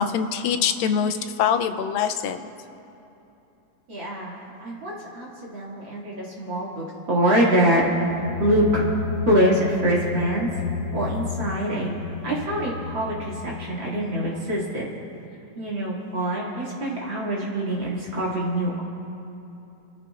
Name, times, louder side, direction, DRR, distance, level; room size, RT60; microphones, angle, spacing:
voice 1, 0.0-2.4, left 7 dB, 90° left, 7 dB, 2.4 m, -24 dB
voice 2, 3.9-7.8 8.4-8.8 9.3-10.5 10.9-14.9 15.6-18.8, right 1 dB, 40° right, -6 dB, 2.7 m, -24 dB
sound 1, 8.1-14.5, left 5 dB, 65° left, 1.6 m, -32 dB
30.0 x 15.0 x 2.5 m, 2.9 s
omnidirectional pair, 3.9 m